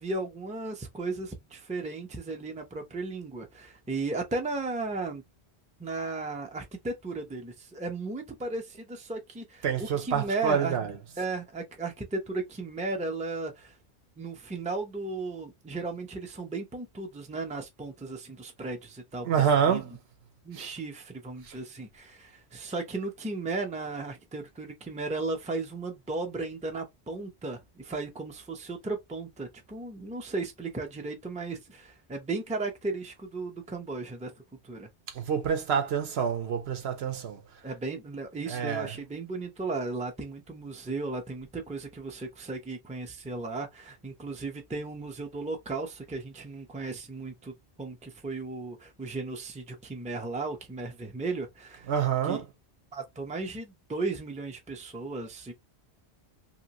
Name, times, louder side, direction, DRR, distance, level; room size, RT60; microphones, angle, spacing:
voice 1, 0.0-5.2 5.8-10.8 11.2-13.8 14.2-19.3 19.7-19.9 20.4-34.3 34.6-34.9 37.6-51.9 52.2-52.4 52.9-55.5, right 3 dB, 10° right, 0.5 m, -35 dB
voice 2, 9.6-10.9 19.3-19.8 20.5-20.7 21.5-21.6 35.1-37.4 38.5-38.9 51.9-52.4, right 7 dB, 70° right, 0.9 m, -27 dB
2.9 x 2.6 x 2.8 m
omnidirectional pair, 1.1 m